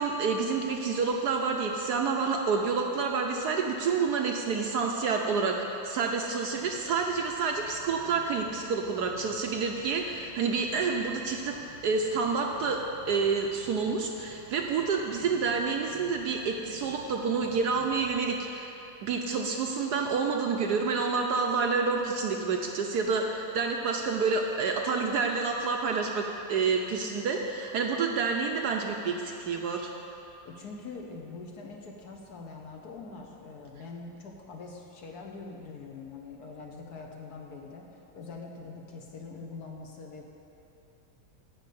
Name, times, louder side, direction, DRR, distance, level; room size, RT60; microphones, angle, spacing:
voice 1, 0.0-11.6 11.8-12.8 13.1-29.9, right 5 dB, 65° right, 2 dB, 1.1 m, -28 dB
sound 1, 6.6-18.2, left 1 dB, 75° left, 3.5 m, -53 dB
voice 2, 30.4-40.2, left 4 dB, 60° left, 1 dB, 1.3 m, -43 dB
10.5 x 5.1 x 8.4 m, 2.8 s
omnidirectional pair, 2.1 m